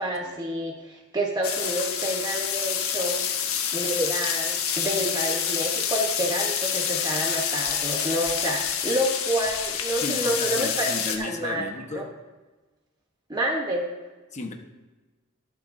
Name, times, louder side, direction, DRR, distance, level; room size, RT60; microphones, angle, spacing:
voice 1, 0.0-3.2 3.7-11.7 11.9-12.1 13.3-13.8, right 1 dB, 20° right, -1 dB, 1.0 m, -28 dB
sound 1, 1.4-11.2, left 8 dB, 75° left, 1.2 m, -28 dB
voice 2, 10.0-12.0 14.3-14.5, left 2 dB, 35° left, 3 dB, 1.1 m, -34 dB
21.5 x 7.6 x 2.7 m, 1.2 s
head